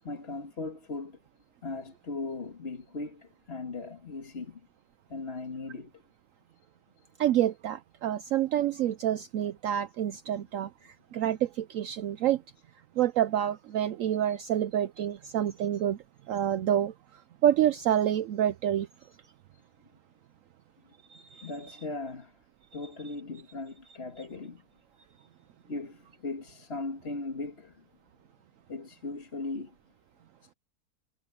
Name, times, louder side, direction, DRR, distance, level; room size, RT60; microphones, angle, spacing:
voice 1, 0.0-1.2 1.6-4.6 5.1-5.9 21.4-22.3 22.7-24.6 25.7-27.8 28.7-29.7, left 3 dB, 40° left, 2.0 m, -38 dB
voice 2, 7.2-12.4 13.0-16.0 16.3-16.9 17.4-18.9 21.1-21.5, right 11 dB, 65° right, 0.9 m, -28 dB
omnidirectional pair, 1.6 m